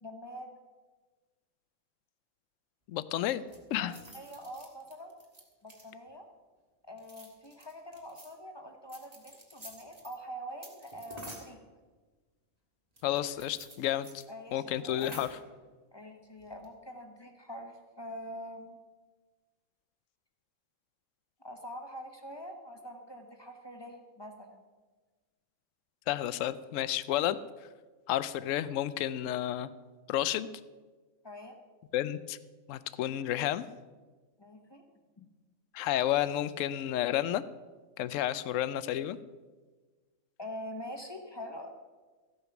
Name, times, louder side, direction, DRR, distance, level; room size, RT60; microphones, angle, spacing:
voice 1, 0.0-0.6 3.8-5.2 5.6-6.3 6.9-11.6 14.3-15.2 15.9-18.8 21.4-24.6 31.2-31.6 34.4-34.8 35.2-35.3 40.4-41.7, equal, 20° left, 4 dB, 1.0 m, -44 dB
voice 2, 2.9-3.4 3.7-3.9 13.0-14.2 14.5-15.3 26.1-27.4 28.1-29.7 30.1-30.5 31.9-32.4 32.7-33.6 35.7-37.4 38.0-39.2, left 12 dB, 70° left, 14 dB, 0.9 m, -31 dB
sound 1, 3.2-6.1 6.9-8.3 8.9-10.2 10.6-11.6 13.0-14.2 14.5-14.6 14.8-15.5 16.4-16.7, right 1 dB, 30° right, 1.8 m, -50 dB
14.0 x 8.2 x 5.9 m, 1.4 s
omnidirectional pair, 1.4 m